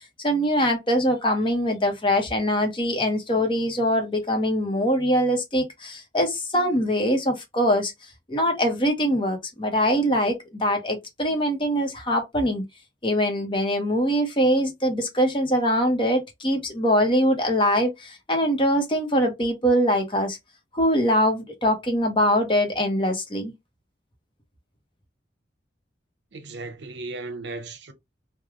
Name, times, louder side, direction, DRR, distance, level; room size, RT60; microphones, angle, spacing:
voice 1, 0.2-7.9 8.3-12.6 13.0-20.4 20.7-23.5, equal, 30° left, 0.9 m, -23 dB
voice 2, 26.3-27.9, right 3 dB, 75° right, 0.7 m, -36 dB
3.2 x 2.3 x 3.6 m
head